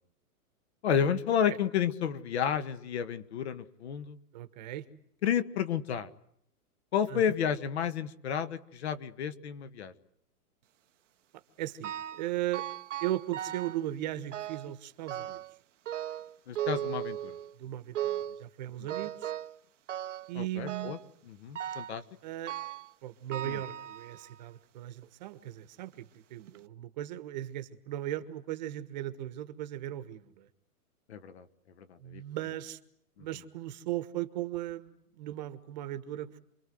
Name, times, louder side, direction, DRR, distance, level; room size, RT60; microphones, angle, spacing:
voice 1, 0.8-4.2 5.2-6.1 6.9-9.9 16.5-17.3 20.3-21.0 21.4-22.0 23.4-23.6 31.1-31.4 32.1-32.2, left 8 dB, 45° left, 13 dB, 1.7 m, -31 dB
voice 2, 4.3-4.8 7.1-7.2 11.3-12.6 13.0-15.4 17.6-19.3 20.3-21.0 22.2-22.6 23.0-30.5 32.0-32.8 33.2-36.4, right 14 dB, 30° right, 11 dB, 1.4 m, -37 dB
sound 1, 11.8-12.3 12.5-13.8 14.3-14.7 15.1-15.5 15.9-17.5 17.9-18.4 18.9-19.6 19.9-20.3 20.7-21.1 21.5-22.0 22.5-22.9 23.3-24.4 25.0-25.1 25.9-26.0 26.5-26.6, right 12 dB, 55° right, 1.1 m, -37 dB
28.5 x 23.5 x 7.8 m, 0.72 s
hypercardioid pair, 170°, 45 cm